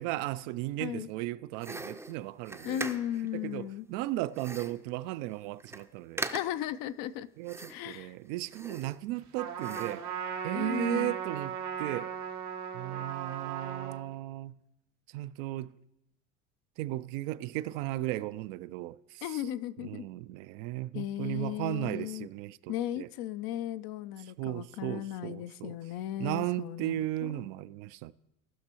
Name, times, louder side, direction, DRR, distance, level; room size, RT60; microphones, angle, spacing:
voice 1, 0.0-2.9 3.3-6.3 7.4-10.0 10.4-12.1 12.7-14.6 15.1-15.7 16.8-19.2 19.8-23.1 24.4-25.7 26.2-28.1, right 16 dB, 65° right, 0.5 m, -36 dB
sound 1, 1.6-3.3 4.3-4.9 5.3-5.4 5.6-5.9 6.2-6.7 7.4-8.0 8.4-9.2 9.6-10.1, right 2 dB, 5° right, 0.5 m, -40 dB
voice 2, 2.6-3.9 6.3-7.3 7.7-8.1 10.5-11.1 19.2-20.1 20.9-22.3 22.7-27.3, left 12 dB, 50° left, 0.5 m, -36 dB
Trumpet, 9.4-14.0, right 7 dB, 90° right, 1.2 m, -37 dB
18.0 x 5.9 x 2.9 m
hypercardioid pair, 70°, 45 cm